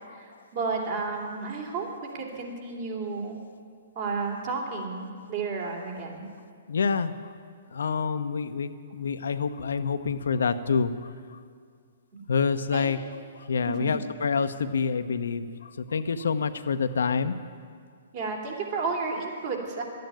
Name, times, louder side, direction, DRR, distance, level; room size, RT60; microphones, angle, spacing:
voice 1, 0.1-1.9 2.1-3.4 3.9-6.2 12.7-12.9 13.7-13.9 18.1-19.8, right 4 dB, 50° right, 0 dB, 3.0 m, -32 dB
voice 2, 6.7-7.1 7.7-10.9 12.3-13.0 13.5-15.4 15.9-17.3, left 5 dB, 75° left, 9 dB, 0.7 m, -27 dB
12.0 x 9.3 x 9.2 m, 2.1 s
hypercardioid pair, 125°, 0 cm